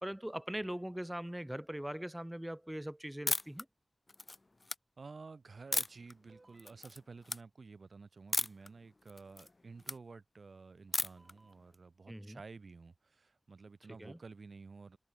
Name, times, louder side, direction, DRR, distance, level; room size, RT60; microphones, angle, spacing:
voice 1, 0.0-3.7 12.1-12.4 14.0-14.2, equal, 10° right, 0.4 m, -41 dB
sound 1, 3.3-3.6 4.1-4.8 5.7-6.1 6.6-7.0 7.2-7.4 8.3-8.7 9.1-10.0 10.9-11.3, left 2 dB, 40° left, 0.7 m, -35 dB
voice 2, 5.0-15.0, right 4 dB, 80° right, 3.6 m, -52 dB
sound 2, 6.3-6.9 9.1-9.2 11.2-11.8, right 2 dB, 45° right, 5.1 m, -65 dB
wide cardioid pair, 70°, 0 cm